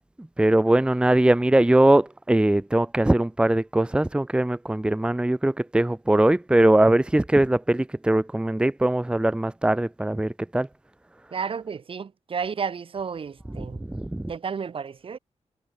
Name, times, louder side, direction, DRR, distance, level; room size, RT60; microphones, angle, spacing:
voice 1, 0.4-10.7 13.9-14.3, right 1 dB, 10° right, 1.0 m, -21 dB
voice 2, 11.3-13.8 14.3-15.2, right 6 dB, 50° right, 2.0 m, -32 dB
wide cardioid pair, 160°, 12 cm